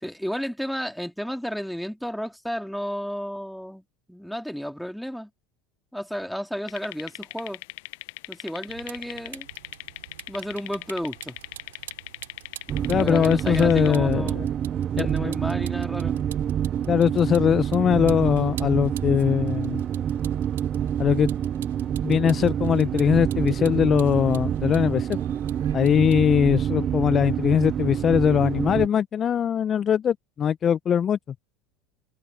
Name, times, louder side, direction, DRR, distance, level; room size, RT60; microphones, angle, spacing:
voice 1, 0.0-5.3 5.9-7.6 8.3-9.5 10.3-11.4 12.9-14.4 15.0-16.2, equal, ahead, 3.4 m, -32 dB
sound 1, 6.7-14.0, left 22 dB, 65° left, 0.9 m, -40 dB
Vehicle, 8.7-26.7, right 13 dB, 80° right, 6.0 m, -47 dB
sound 2, 12.7-28.9, right 9 dB, 40° right, 0.4 m, -27 dB
voice 2, 12.9-14.5 15.0-15.3 16.9-19.8 21.0-21.3 22.0-25.2 25.7-31.2, left 8 dB, 35° left, 0.7 m, -21 dB
hypercardioid pair, 80°, 0 cm